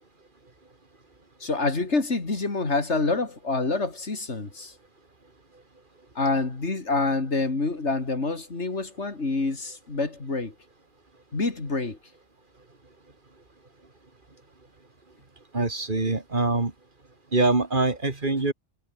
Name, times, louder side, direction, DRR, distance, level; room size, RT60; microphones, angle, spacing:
voice 1, 1.4-4.7 6.2-10.5 11.3-12.0, left 3 dB, 90° left, 3.4 m, -27 dB
voice 2, 15.5-16.7 17.3-18.5, right 3 dB, 45° right, 2.5 m, -24 dB
omnidirectional pair, 1.2 m